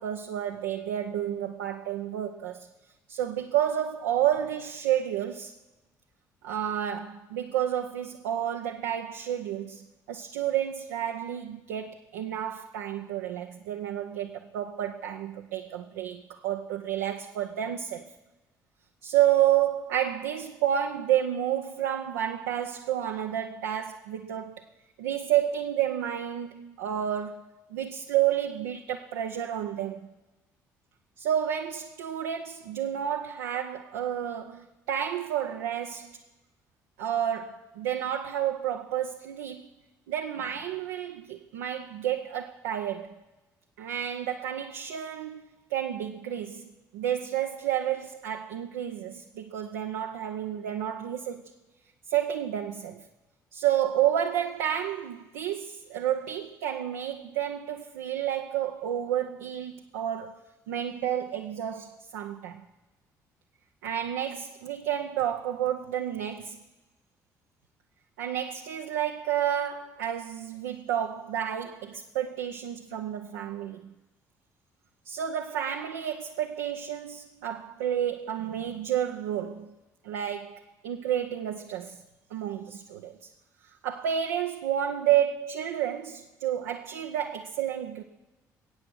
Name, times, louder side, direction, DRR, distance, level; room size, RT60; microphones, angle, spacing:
voice 1, 0.0-2.7 3.1-5.5 6.4-18.1 19.0-24.6 25.0-30.1 31.2-36.1 37.0-39.7 40.1-43.2 43.8-45.4 45.7-51.4 52.1-53.0 53.5-62.6 63.8-66.6 68.2-73.9 75.0-79.7 80.0-82.0 82.3-83.3 83.8-88.0, right 10 dB, 70° right, 0.7 m, -30 dB
22.0 x 8.6 x 6.2 m
figure-of-eight pair, 45°, 9 cm